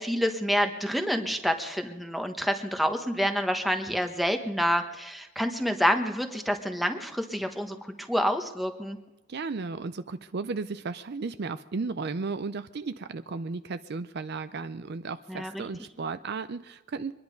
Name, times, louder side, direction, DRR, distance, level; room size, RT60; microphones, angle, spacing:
voice 1, 0.0-9.0 15.3-15.6, equal, ahead, 5 dB, 1.1 m, -28 dB
voice 2, 9.3-17.1, right 4 dB, 50° right, 11 dB, 0.5 m, -34 dB
24.5 x 10.5 x 5.2 m, 1.1 s
head